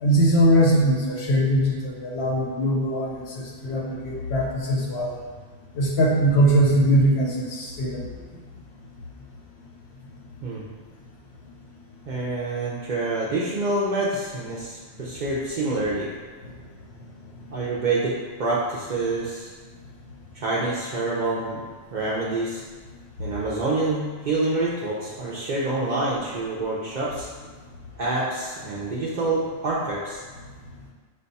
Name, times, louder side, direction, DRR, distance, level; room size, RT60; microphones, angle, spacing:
voice 1, 0.0-5.2 5.8-8.1 15.7-15.8, right 1 dB, 60° left, -2 dB, 0.8 m, -21 dB
voice 2, 12.1-16.1 17.5-19.5 20.3-21.6 21.9-22.6 23.2-27.3 28.0-30.2, right 2 dB, 60° right, -6 dB, 0.5 m, -27 dB
5.2 x 2.2 x 4.0 m, 1.4 s
omnidirectional pair, 1.4 m